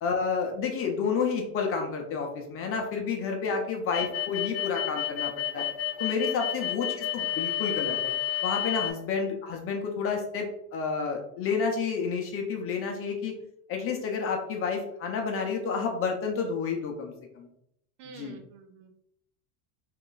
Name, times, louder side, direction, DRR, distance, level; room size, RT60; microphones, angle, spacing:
voice 1, 0.0-5.7 6.0-8.1 8.4-13.3 13.7-17.5 18.1-18.4, left 5 dB, 30° left, 2 dB, 0.5 m, -30 dB
sound 1, 3.9-8.9, left 12 dB, 55° left, 0.8 m, -30 dB
voice 2, 18.0-18.9, right 5 dB, 70° right, 6 dB, 0.8 m, -48 dB
3.0 x 2.4 x 3.8 m, 0.73 s
supercardioid pair, 130°, 47 cm